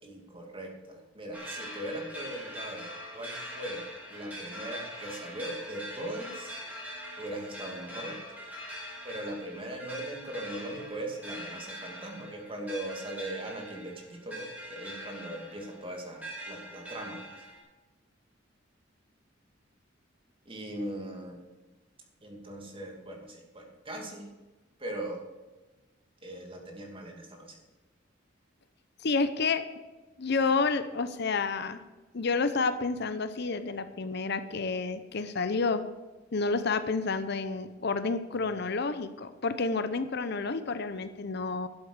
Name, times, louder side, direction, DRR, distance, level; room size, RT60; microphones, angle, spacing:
voice 1, 0.0-6.6 7.2-8.2 9.0-17.2 20.5-21.4 22.2-24.3 24.8-25.2 26.2-27.6, right 1 dB, 30° right, 1 dB, 2.5 m, -39 dB
sound 1, 1.3-17.6, equal, 10° right, 3.6 m, -43 dB
voice 2, 29.0-29.7 30.2-31.8 32.1-35.8 36.3-41.7, left 4 dB, 60° left, 11 dB, 0.7 m, -29 dB
11.5 x 8.1 x 6.5 m, 1.2 s
head